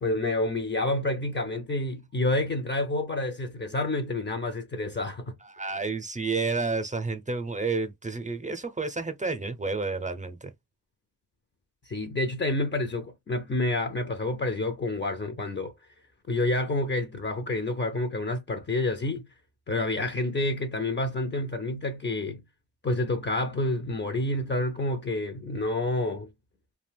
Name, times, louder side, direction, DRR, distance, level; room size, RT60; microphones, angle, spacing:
voice 1, 0.0-5.3 11.9-15.7 16.3-19.3 19.7-22.4 22.8-26.3, left 2 dB, 35° left, 0.6 m, -28 dB
voice 2, 5.4-10.5, right 4 dB, 25° right, 0.6 m, -30 dB
2.4 x 2.2 x 3.3 m
cardioid pair, 65°, 31 cm